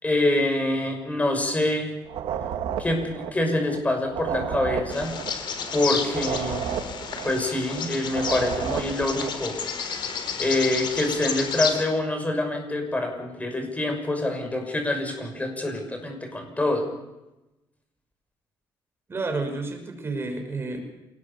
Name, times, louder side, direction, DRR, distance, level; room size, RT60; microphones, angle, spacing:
voice 1, 0.0-1.9 2.8-5.1 5.7-6.6 7.2-9.6 9.9-10.0 10.4-16.8, left 1 dB, 15° left, 4 dB, 6.2 m, -26 dB
sound 1, 2.1-9.4, right 8 dB, 85° right, 2.4 m, -32 dB
Bird vocalization bird call bird song, 4.9-11.8, left 6 dB, 60° left, 3.7 m, -31 dB
voice 2, 19.1-20.8, right 3 dB, 25° right, 5 dB, 5.8 m, -30 dB
27.0 x 19.5 x 7.1 m, 0.98 s
cardioid pair, 120°, 9 cm